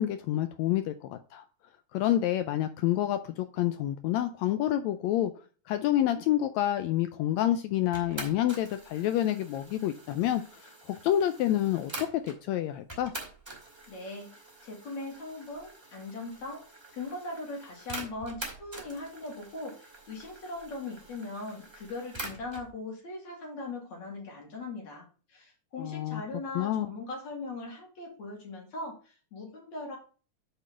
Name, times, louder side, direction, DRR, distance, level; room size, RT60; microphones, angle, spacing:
voice 1, 0.0-1.4 1.9-5.3 5.7-13.1 25.8-26.2 26.5-26.9, left 12 dB, 90° left, 9 dB, 1.5 m, -28 dB
sound 1, 7.9-12.4 12.9-22.7, right 2 dB, 10° right, 1.8 m, -45 dB
voice 2, 13.9-16.6 16.9-30.0, left 2 dB, 60° left, -1 dB, 3.8 m, -40 dB
6.2 x 5.4 x 6.1 m, 0.38 s
omnidirectional pair, 3.8 m